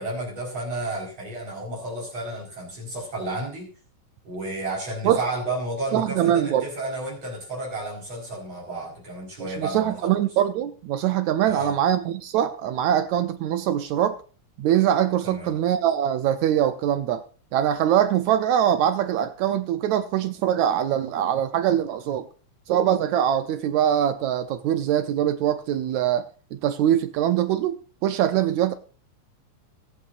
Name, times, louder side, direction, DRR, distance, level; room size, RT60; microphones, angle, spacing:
voice 1, 0.0-3.7 4.2-10.2 11.4-11.7 15.2-15.5, right 2 dB, 55° right, -3 dB, 5.9 m, -32 dB
voice 2, 5.9-6.6 9.4-14.2 14.6-17.2 17.5-22.2 22.7-28.7, right 10 dB, 75° right, 10 dB, 2.1 m, -23 dB
23.5 x 8.4 x 2.6 m, 0.38 s
omnidirectional pair, 3.4 m